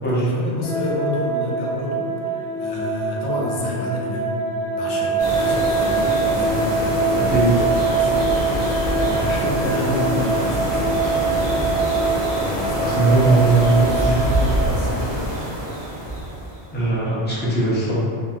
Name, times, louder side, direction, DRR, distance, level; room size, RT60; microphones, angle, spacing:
voice 1, 0.1-4.4 4.7-6.1 6.3-7.3 7.9-10.8 12.3-15.3, left 1 dB, 80° left, -3 dB, 0.9 m, -29 dB
sound 1, 0.6-14.5, right 4 dB, 60° right, 1.0 m, -24 dB
sound 2, 5.2-16.7, right 1 dB, 30° right, 0.9 m, -25 dB
voice 2, 7.1-7.7 12.8-14.1 16.7-17.9, right 2 dB, 15° left, -9 dB, 0.5 m, -19 dB
2.7 x 2.7 x 2.4 m, 2.2 s
omnidirectional pair, 1.1 m